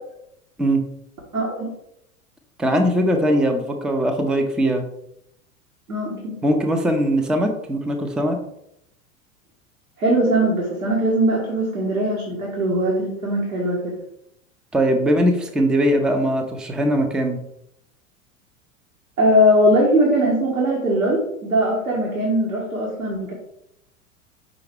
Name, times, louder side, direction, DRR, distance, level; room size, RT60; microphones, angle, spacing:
voice 1, 1.3-1.7 5.9-6.4 10.0-14.0 19.2-23.3, equal, 80° right, -3 dB, 1.5 m, -20 dB
voice 2, 2.6-4.8 6.4-8.4 14.7-17.4, equal, ahead, 5 dB, 0.4 m, -20 dB
5.6 x 4.9 x 3.5 m, 0.77 s
figure-of-eight pair, 85°, 42 cm